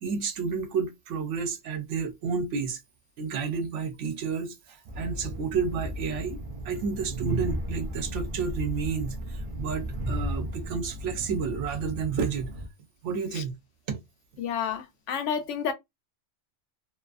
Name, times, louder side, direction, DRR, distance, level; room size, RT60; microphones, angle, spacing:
voice 1, 0.0-2.8 3.2-6.4 6.6-12.5 13.0-13.6 13.9-14.0, right 5 dB, 80° right, 1.0 m, -31 dB
Train, 4.9-12.7, right 1 dB, 60° right, 0.3 m, -35 dB
voice 2, 14.4-15.7, left 7 dB, 80° left, 0.9 m, -30 dB
2.6 x 2.4 x 2.3 m
omnidirectional pair, 1.2 m